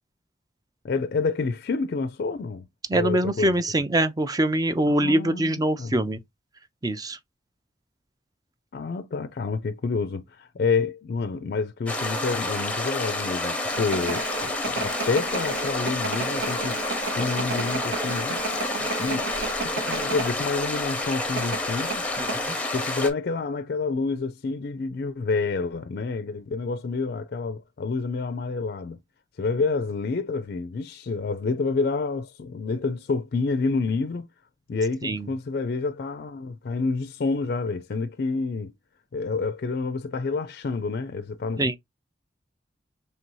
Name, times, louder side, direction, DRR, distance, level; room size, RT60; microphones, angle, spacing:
voice 1, 0.8-2.7 2.9-3.6 4.9-6.1 8.7-16.8 17.1-18.4 18.8-19.3 19.6-22.1 22.7-29.0 29.4-34.3 34.7-38.7 39.1-41.8, left 4 dB, 55° left, 0.4 m, -28 dB
voice 2, 2.9-6.2 6.8-7.2 22.2-22.6 35.0-35.3 41.6-41.8, right 1 dB, 20° right, 0.4 m, -24 dB
sound 1, 11.9-23.1, left 2 dB, 5° left, 0.7 m, -29 dB
sound 2, 13.7-20.3 20.6-20.8 21.4-22.4, right 4 dB, 85° right, 0.9 m, -33 dB
3.3 x 2.6 x 4.5 m
head